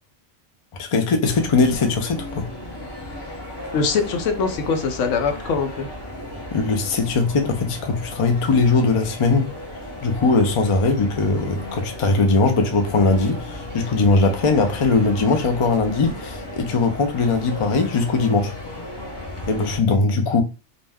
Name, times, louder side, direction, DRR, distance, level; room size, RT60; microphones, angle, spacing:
voice 1, 0.8-2.5 6.5-9.5 10.0-18.5 19.5-20.4, left 3 dB, 55° left, 0.3 m, -20 dB
sound 1, 1.2-19.8, left 1 dB, 25° left, 0.8 m, -35 dB
voice 2, 3.7-5.9, left 5 dB, 85° left, 1.0 m, -22 dB
2.6 x 2.1 x 3.4 m
omnidirectional pair, 1.3 m